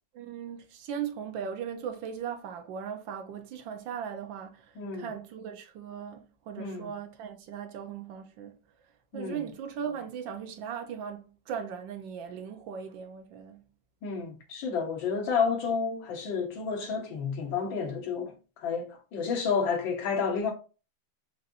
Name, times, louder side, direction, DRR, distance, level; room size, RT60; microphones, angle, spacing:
voice 1, 0.1-8.5 9.1-13.7, right 7 dB, 75° right, 1.4 m, -38 dB
voice 2, 4.8-5.1 6.6-6.9 9.1-9.4 14.0-20.5, left 5 dB, 75° left, 1.7 m, -30 dB
5.2 x 2.6 x 2.7 m
omnidirectional pair, 2.1 m